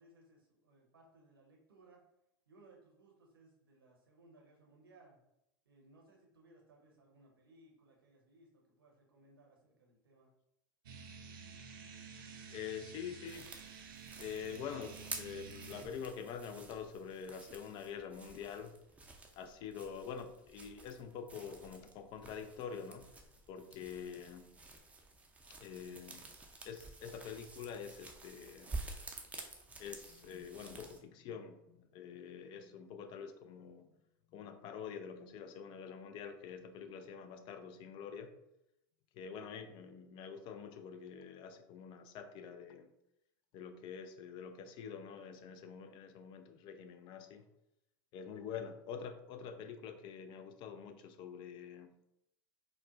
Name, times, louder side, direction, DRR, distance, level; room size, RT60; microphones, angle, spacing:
voice 1, 0.0-2.0 2.5-5.2 5.6-10.3, right 2 dB, 90° right, -1 dB, 0.9 m, -64 dB
sound 1, 10.9-15.8, right 5 dB, 75° right, 0.5 m, -51 dB
voice 2, 12.5-13.5 14.2-18.7 19.4-23.1 23.5-24.5 25.6-26.3 26.6-28.7 29.8-33.9 34.3-38.3 39.1-42.9 43.5-47.5 48.1-51.9, left 7 dB, 45° left, 8 dB, 0.4 m, -46 dB
sound 2, 13.3-31.0, right 3 dB, 10° right, 0.5 m, -50 dB
4.1 x 2.1 x 2.4 m, 0.85 s
hypercardioid pair, 95°, 12 cm